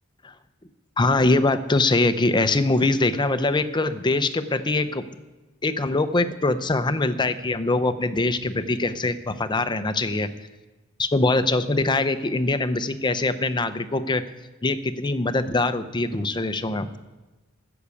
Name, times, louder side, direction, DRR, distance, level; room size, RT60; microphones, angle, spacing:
voice 1, 1.0-5.1 5.6-10.3 11.0-14.2 14.6-16.9, left 2 dB, 20° left, 11 dB, 0.7 m, -23 dB
13.5 x 7.1 x 8.4 m, 1.1 s
head